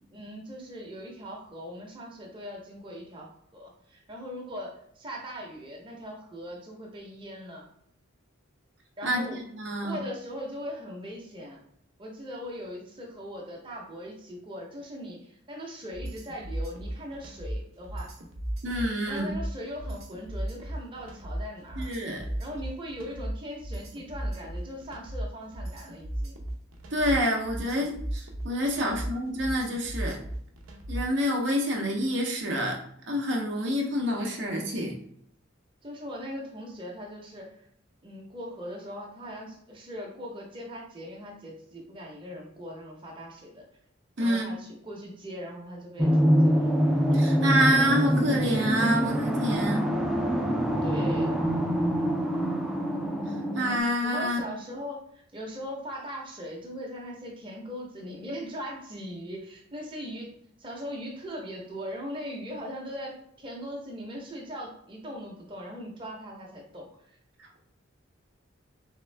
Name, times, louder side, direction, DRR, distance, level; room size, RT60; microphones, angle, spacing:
voice 1, 0.1-7.7 9.0-9.4 9.8-11.6 12.0-18.1 19.1-21.9 22.4-26.4 28.7-29.0 34.0-34.4 35.8-37.5 38.0-43.6 44.2-46.7 50.8-51.4 54.0-60.3 60.6-66.9, equal, 25° right, -2 dB, 0.8 m, -40 dB
voice 2, 9.5-10.0 18.6-19.3 21.8-22.3 26.9-30.2 30.9-32.8 33.1-35.0 44.2-44.5 47.1-49.8 53.5-54.4, equal, 60° right, 1 dB, 0.7 m, -27 dB
sound 1, 15.9-31.2, right 1 dB, 90° right, 0.8 m, -36 dB
sound 2, 46.0-53.8, equal, ahead, 0.4 m, -25 dB
3.6 x 3.4 x 3.3 m, 0.68 s
head